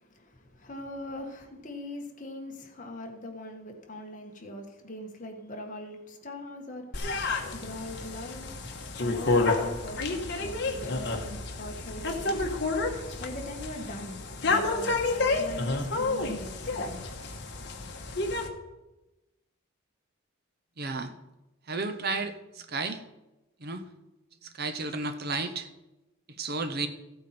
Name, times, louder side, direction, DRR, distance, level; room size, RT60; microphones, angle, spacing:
voice 1, 0.0-7.0 7.5-8.5 8.9-12.4 13.2-17.1, left 1 dB, 35° left, 3 dB, 1.5 m, -41 dB
sound 1, 6.9-18.5, left 3 dB, 50° left, 1.4 m, -30 dB
voice 2, 20.8-21.1 21.7-23.0 23.6-23.9 24.4-25.7 26.3-26.9, right 3 dB, 45° right, 9 dB, 0.8 m, -33 dB
15.0 x 8.5 x 4.3 m, 1.0 s
head